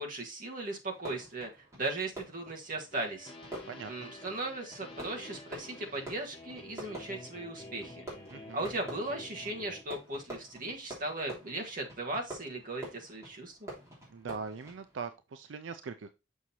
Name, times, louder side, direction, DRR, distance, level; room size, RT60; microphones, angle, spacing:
voice 1, 0.0-3.3 3.9-8.1 8.5-13.7, right 2 dB, 45° right, 1 dB, 1.5 m, -37 dB
Fireworks, 0.9-15.1, right 1 dB, 15° right, 3.1 m, -48 dB
sound 1, 2.9-9.8, left 1 dB, 30° left, 1.5 m, -49 dB
voice 2, 3.7-4.1 8.3-8.7 14.1-16.1, right 5 dB, 80° right, 10 dB, 0.5 m, -41 dB
6.3 x 6.1 x 2.8 m, 0.26 s
head